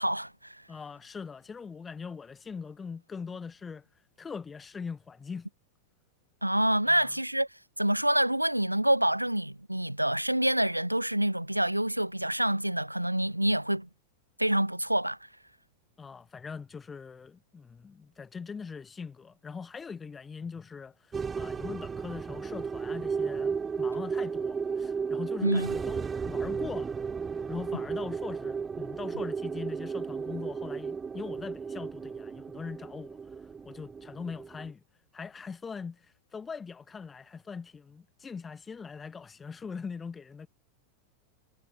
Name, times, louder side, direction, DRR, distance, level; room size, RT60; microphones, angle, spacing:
voice 1, 0.0-0.6 6.4-7.5 7.8-13.9 14.4-15.2 25.4-25.7, right 1 dB, 90° right, 6.5 m, -27 dB
voice 2, 0.7-3.8 4.2-5.5 7.0-7.1 16.0-27.0 27.5-34.8 35.1-40.5, left 5 dB, 15° left, 4.6 m, -41 dB
sound 1, 21.1-34.7, right 5 dB, 15° right, 6.4 m, -34 dB
figure-of-eight pair, 90°, 0 cm